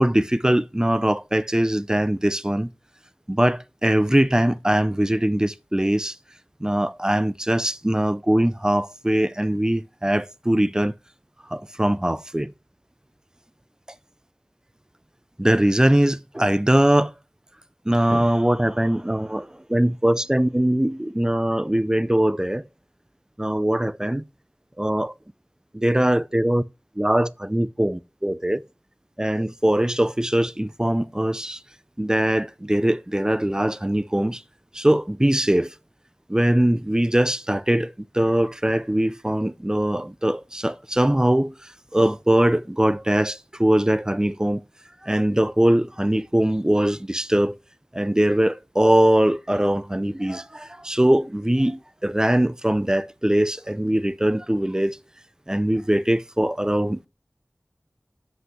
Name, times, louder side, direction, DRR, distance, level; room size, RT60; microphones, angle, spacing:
voice 1, 0.0-2.7 3.3-6.2 6.6-10.9 11.5-12.5 15.4-17.1 17.9-22.7 23.4-24.2 24.8-25.1 25.7-26.6 27.0-28.6 29.2-31.6 32.0-34.4 34.7-35.7 36.3-44.6 45.0-47.6 47.9-55.0 55.5-57.0, right 1 dB, 15° right, 0.5 m, -21 dB
7.6 x 5.5 x 6.3 m
wide cardioid pair, 40°, 4 cm